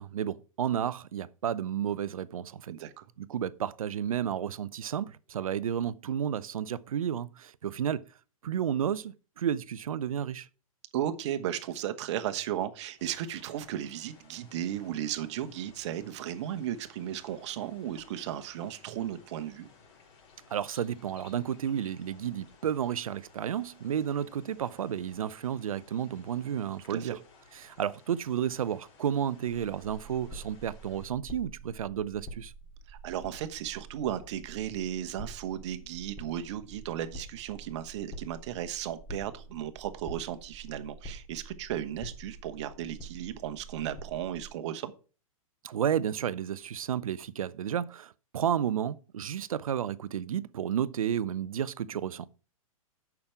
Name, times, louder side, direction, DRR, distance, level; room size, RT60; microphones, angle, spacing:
voice 1, 0.0-2.7 3.2-8.1 8.4-10.5 20.5-27.2 27.5-32.5 45.6-52.3, right 9 dB, 75° right, 0.6 m, -32 dB
voice 2, 2.7-3.0 10.9-19.7 26.9-27.2 32.9-44.9, right 11 dB, 55° right, 1.1 m, -35 dB
sound 1, 13.0-31.1, left 5 dB, 45° left, 4.4 m, -58 dB
sound 2, 29.5-44.5, right 2 dB, 20° left, 3.1 m, -47 dB
8.6 x 6.0 x 5.8 m
hypercardioid pair, 115°, 18 cm